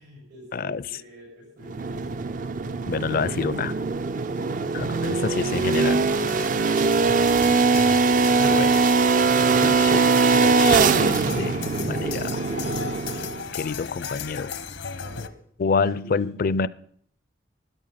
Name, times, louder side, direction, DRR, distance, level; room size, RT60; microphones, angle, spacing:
voice 1, 0.0-2.4 4.3-4.7 6.4-6.8 15.0-15.4 16.0-16.1, equal, 85° right, -4 dB, 7.3 m, -46 dB
voice 2, 0.5-1.0 2.9-3.7 4.7-6.0 7.9-8.0 8.4-8.9 9.4-12.5 13.1-13.3 13.5-14.6 15.6-16.7, left 5 dB, 55° left, 19 dB, 0.4 m, -28 dB
sound 1, 1.6-13.5, right 4 dB, 45° right, 0.4 m, -21 dB
sound 2, 5.6-15.3, left 5 dB, 85° left, 0.9 m, -37 dB
12.5 x 11.5 x 5.7 m, 0.64 s
head